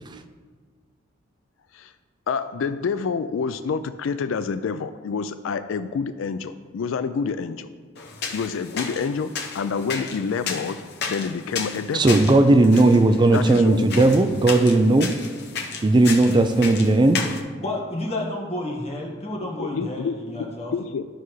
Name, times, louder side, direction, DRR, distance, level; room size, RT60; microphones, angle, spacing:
voice 1, 2.3-7.7 8.3-10.8 11.1-12.2 13.3-14.0 19.6-21.1, left 5 dB, 85° left, 11 dB, 0.4 m, -28 dB
sound 1, 7.9-17.4, left 5 dB, 60° left, 0.8 m, -33 dB
voice 2, 11.9-15.2 15.8-17.2, right 2 dB, 25° right, 8 dB, 0.4 m, -17 dB
voice 3, 17.6-20.7, left 1 dB, 35° left, -2 dB, 1.5 m, -30 dB
13.0 x 5.6 x 3.2 m, 1.5 s
head